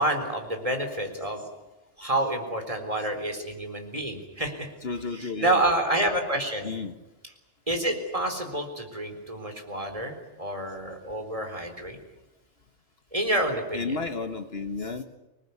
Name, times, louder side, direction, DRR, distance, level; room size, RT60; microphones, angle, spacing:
voice 1, 0.0-1.4 2.0-4.7 5.1-6.7 7.7-12.0 13.1-14.0, right 1 dB, 30° right, 5 dB, 4.0 m, -28 dB
voice 2, 4.8-5.6 6.6-7.0 13.7-15.0, left 4 dB, 55° left, 8 dB, 1.6 m, -32 dB
26.0 x 19.5 x 9.5 m, 1.0 s
omnidirectional pair, 1.2 m